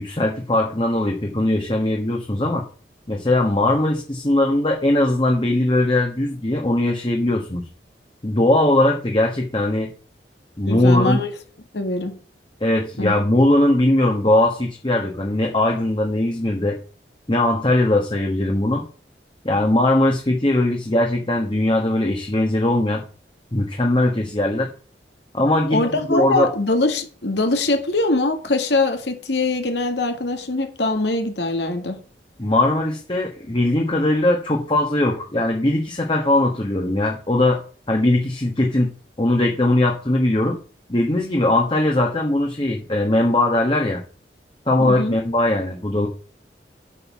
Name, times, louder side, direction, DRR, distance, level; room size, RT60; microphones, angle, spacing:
voice 1, 0.0-2.6 3.1-7.6 8.2-9.9 10.6-11.2 12.6-16.8 17.3-18.8 19.4-23.0 23.5-24.7 25.3-26.5 32.4-37.6 37.9-38.9 39.2-40.6 40.9-44.0 44.7-46.1, left 1 dB, 30° left, 1.2 m, -20 dB
voice 2, 10.7-11.3 11.7-12.2 13.0-13.1 25.7-32.0 44.8-45.2, left 2 dB, 80° left, 1.8 m, -22 dB
8.5 x 5.5 x 7.2 m
head